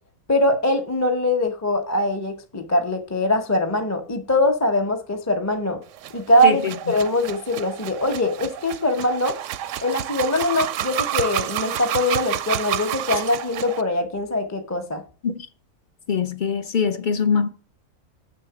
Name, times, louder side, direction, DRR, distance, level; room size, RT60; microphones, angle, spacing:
voice 1, 0.3-5.8 6.1-9.4 9.8-15.0, left 1 dB, 15° left, 0.8 m, -22 dB
sound 1, 5.9-13.8, right 11 dB, 65° right, 0.8 m, -29 dB
voice 2, 6.4-6.7 15.2-15.5 16.1-17.5, left 6 dB, 45° left, 0.7 m, -23 dB
7.4 x 6.6 x 5.9 m
omnidirectional pair, 1.6 m